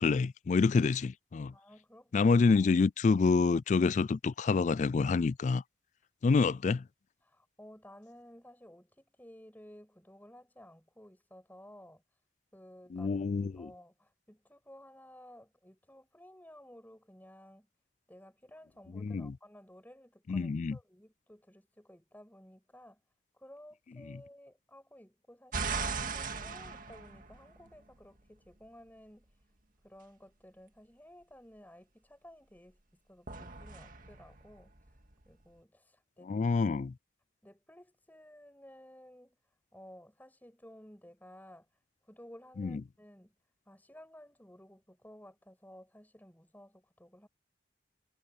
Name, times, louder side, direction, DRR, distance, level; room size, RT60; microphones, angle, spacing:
voice 1, 0.0-1.5 2.1-5.6 6.2-6.8 12.9-13.7 18.9-19.4 20.3-20.8 36.3-36.9 42.6-42.8, left 4 dB, 40° left, 0.3 m, -27 dB
voice 2, 1.5-2.3 6.3-6.5 7.2-12.0 12.5-13.2 13.6-17.7 18.1-23.0 23.3-29.3 29.8-32.8 33.1-34.7 35.2-36.3 37.4-39.3 39.7-41.7 42.0-43.3 43.7-47.3, equal, 10° left, 6.4 m, -55 dB
sound 1, 25.5-27.9 33.3-35.3, right 4 dB, 45° right, 2.0 m, -38 dB
head